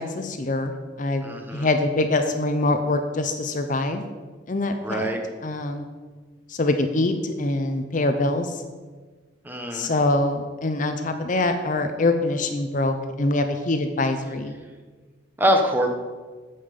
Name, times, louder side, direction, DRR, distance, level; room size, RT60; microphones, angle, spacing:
voice 1, 0.0-1.2 1.5-4.0 4.5-5.1 5.4-5.8 6.5-8.5 9.7-14.5, left 2 dB, 40° left, 7 dB, 0.6 m, -24 dB
voice 2, 1.2-1.7 4.8-5.2 9.4-9.9 15.4-15.9, equal, 10° right, 3 dB, 0.9 m, -23 dB
8.7 x 5.5 x 6.7 m, 1.4 s
head